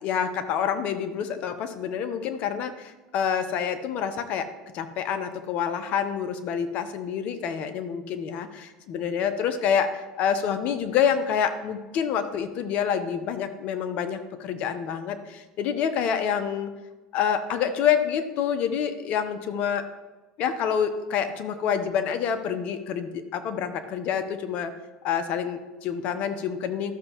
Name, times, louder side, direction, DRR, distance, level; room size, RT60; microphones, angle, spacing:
voice 1, 0.0-4.5 4.7-16.7 17.1-19.9 20.4-24.7 25.0-26.9, left 8 dB, 55° left, 9 dB, 0.9 m, -27 dB
13.0 x 6.5 x 3.0 m, 1.1 s
supercardioid pair, 100°, 3 cm